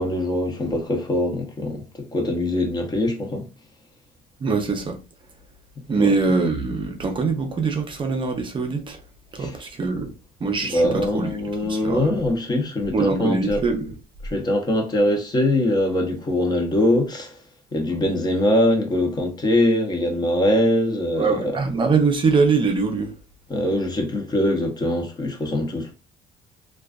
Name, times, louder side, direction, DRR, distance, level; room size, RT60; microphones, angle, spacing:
voice 1, 0.0-3.5 6.0-6.1 9.4-9.6 10.6-13.6 14.2-17.4 17.7-21.6 23.5-25.9, left 1 dB, 25° left, 0.8 m, -22 dB
voice 2, 4.4-5.0 5.9-9.0 9.4-10.1 10.4-11.3 11.6-12.1 12.9-14.0 21.2-23.1, right 4 dB, 30° right, 0.6 m, -23 dB
2.4 x 2.3 x 2.4 m
cardioid pair, 110°, 17 cm